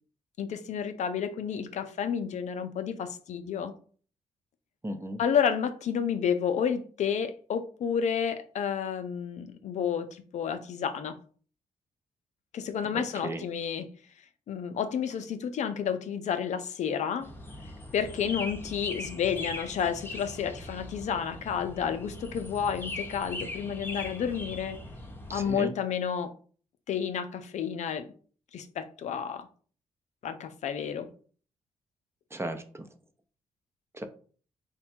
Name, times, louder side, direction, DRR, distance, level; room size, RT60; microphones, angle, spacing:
voice 1, 0.4-3.7 5.2-11.2 12.5-13.9 14.5-17.3 17.9-24.8 25.3-26.3 26.9-28.1 28.5-29.5 30.2-31.1, left 7 dB, 65° left, 0.5 m, -30 dB
voice 2, 4.8-5.2 12.9-13.4 25.3-25.7 32.3-32.9 33.9-34.1, right 1 dB, 20° right, 0.7 m, -35 dB
sound 1, 17.2-25.5, left 2 dB, 15° left, 0.8 m, -40 dB
3.4 x 2.2 x 4.3 m
supercardioid pair, 50°, 13 cm